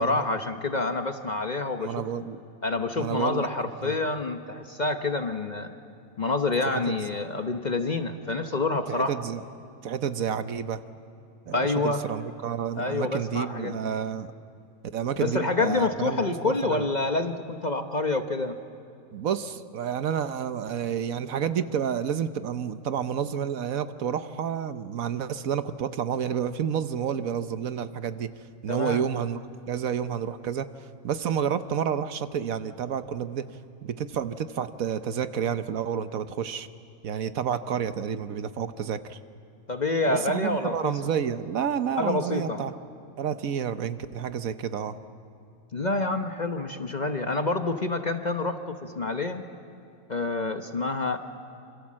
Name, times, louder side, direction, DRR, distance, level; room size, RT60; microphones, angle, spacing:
voice 1, 0.0-2.0 2.6-5.7 6.2-9.2 11.5-12.0 12.8-13.8 15.2-18.6 28.7-29.0 39.7-41.0 42.0-42.6 45.7-49.5 50.1-51.2, left 3 dB, 35° left, 7 dB, 0.9 m, -27 dB
voice 2, 1.8-2.4 3.0-3.5 3.8-4.0 6.7-7.1 8.9-9.4 9.8-10.8 11.5-14.3 14.9-16.8 19.1-28.3 28.6-29.4 29.7-33.5 33.8-36.7 37.0-39.2 40.1-42.8 43.2-45.0, right 8 dB, 70° right, 11 dB, 1.3 m, -30 dB
27.0 x 26.0 x 7.5 m, 2.6 s
omnidirectional pair, 1.5 m